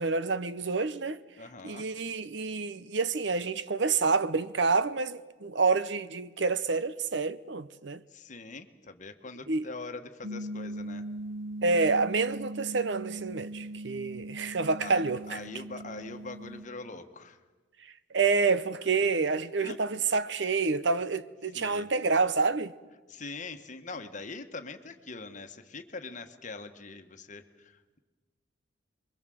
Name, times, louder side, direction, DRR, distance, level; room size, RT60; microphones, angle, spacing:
voice 1, 0.0-1.2 1.6-8.0 9.5-9.7 11.6-15.4 18.1-22.7, right 4 dB, 60° right, 0.8 m, -28 dB
voice 2, 1.4-1.9 8.1-11.1 14.8-17.4 19.6-19.8 21.5-21.9 23.1-28.0, left 3 dB, 40° left, 1.4 m, -43 dB
sound 1, 10.2-16.7, right 1 dB, 90° right, 1.8 m, -40 dB
27.0 x 22.5 x 7.8 m
head